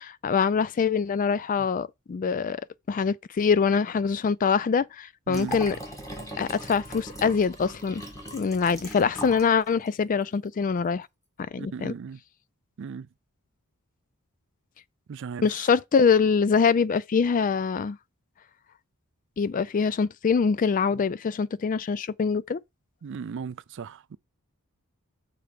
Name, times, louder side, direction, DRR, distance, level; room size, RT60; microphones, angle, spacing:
voice 1, 0.0-2.6 2.9-5.8 6.4-8.0 8.3-11.1 11.4-11.9 15.4-18.0 19.4-22.6, left 5 dB, 35° left, 0.3 m, -24 dB
Liquid, 5.3-9.5 9.9-10.0, equal, 15° left, 1.7 m, -39 dB
voice 2, 5.3-5.6 11.6-12.2 12.8-13.1 15.1-15.7 20.9-21.0 23.0-24.2, right 6 dB, 55° right, 0.4 m, -37 dB
6.8 x 4.4 x 5.0 m
head